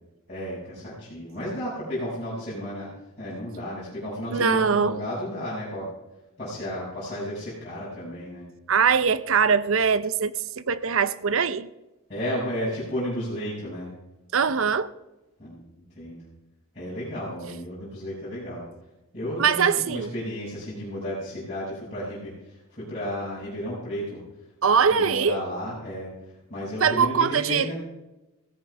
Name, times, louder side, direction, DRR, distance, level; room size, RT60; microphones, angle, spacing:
voice 1, 0.3-2.9 3.2-5.9 6.4-8.5 12.1-13.9 15.4-15.6 15.9-16.2 16.7-18.7 19.1-24.2 24.9-26.1 26.5-27.7, equal, 30° left, 5.8 m, -33 dB
voice 2, 4.3-5.0 8.7-11.7 14.3-14.9 19.4-20.1 24.6-25.4 26.8-27.7, right 6 dB, 65° right, 0.6 m, -22 dB
16.5 x 14.0 x 3.4 m
head